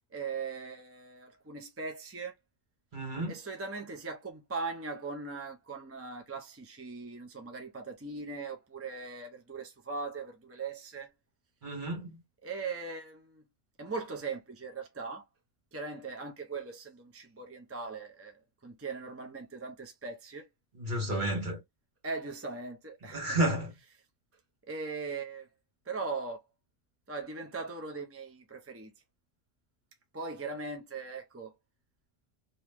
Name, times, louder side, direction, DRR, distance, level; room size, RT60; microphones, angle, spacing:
voice 1, 0.1-2.3 3.3-11.1 12.4-13.4 13.8-15.2 15.7-20.5 22.0-23.4 24.7-25.5 25.9-26.4 27.1-28.9 30.1-31.5, right 4 dB, 20° right, 0.5 m, -39 dB
voice 2, 2.9-3.3 11.6-12.1 20.8-21.6 23.1-23.7, right 1 dB, 45° right, 1.6 m, -31 dB
3.0 x 2.7 x 3.4 m
omnidirectional pair, 1.2 m